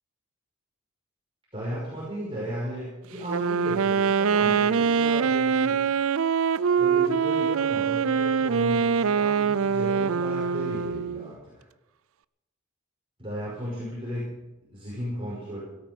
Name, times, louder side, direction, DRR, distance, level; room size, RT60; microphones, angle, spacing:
voice 1, 1.5-5.8 6.8-11.6 13.2-14.4 14.7-15.6, right 1 dB, 25° right, -7 dB, 5.6 m, -35 dB
Wind instrument woodwind instrument, 3.2-11.3, right 6 dB, 75° right, 0.5 m, -24 dB
17.0 x 13.0 x 5.4 m, 1.0 s
head